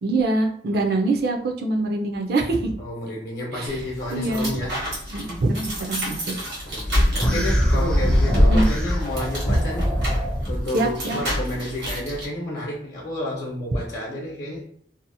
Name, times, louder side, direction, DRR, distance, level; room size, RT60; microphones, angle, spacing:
voice 1, 0.0-2.7 3.5-3.7 4.1-4.5 5.1-6.4 7.2-7.4 7.7-8.1 8.5-8.7 10.7-11.2, right 2 dB, 60° right, 3 dB, 0.4 m, -24 dB
voice 2, 2.8-4.8 6.6-10.0 10.5-14.6, left 1 dB, 65° left, -4 dB, 0.7 m, -31 dB
sound 1, 3.7-12.3, equal, 85° right, 1.2 m, -26 dB
sound 2, 7.2-10.6, equal, 5° left, 0.4 m, -24 dB
2.7 x 2.0 x 2.6 m, 0.65 s
head